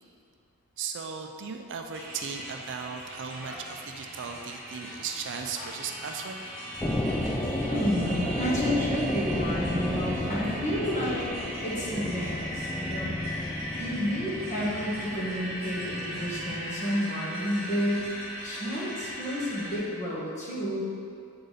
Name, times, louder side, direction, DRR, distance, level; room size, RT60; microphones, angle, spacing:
voice 1, 0.8-6.4, right 6 dB, 55° right, 4 dB, 0.4 m, -37 dB
sound 1, 1.9-19.8, equal, 10° right, 1.5 m, -39 dB
sound 2, 6.8-16.7, left 1 dB, 10° left, 0.4 m, -32 dB
voice 2, 7.6-11.3 11.6-13.2 13.8-18.1 18.4-20.8, equal, 35° left, -6 dB, 1.4 m, -31 dB
8.0 x 3.8 x 4.1 m, 2.3 s
head